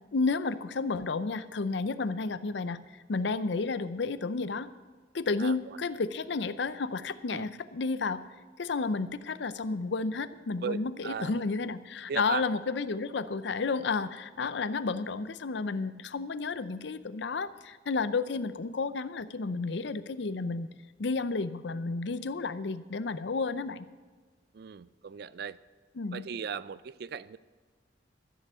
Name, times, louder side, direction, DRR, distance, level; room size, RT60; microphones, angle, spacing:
voice 1, 0.1-4.7 5.1-8.2 8.6-20.7 21.0-23.9 26.0-26.3, left 4 dB, 70° left, 14 dB, 0.5 m, -32 dB
voice 2, 5.4-5.8 7.3-7.5 10.6-11.5 12.1-12.4 24.5-25.6 26.1-27.4, right 6 dB, 55° right, 17 dB, 0.4 m, -37 dB
13.5 x 6.7 x 8.1 m, 1.4 s
head